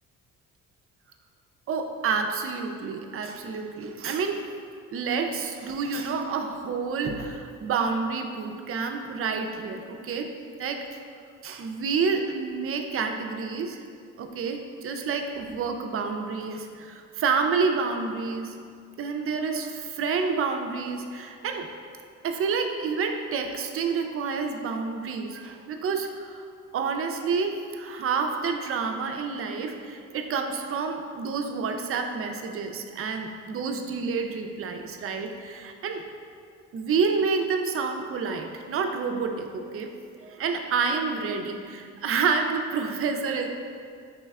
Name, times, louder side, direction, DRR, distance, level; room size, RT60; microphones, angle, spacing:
voice 1, 1.7-4.4 4.9-10.3 10.6-10.8 11.4-13.8 14.2-18.5 19.0-21.7 22.2-26.5 26.7-36.0 36.7-39.9 40.2-43.5, right 5 dB, 50° right, 4 dB, 0.4 m, -29 dB
5.5 x 3.1 x 2.3 m, 2.2 s
cardioid pair, 90°, 30 cm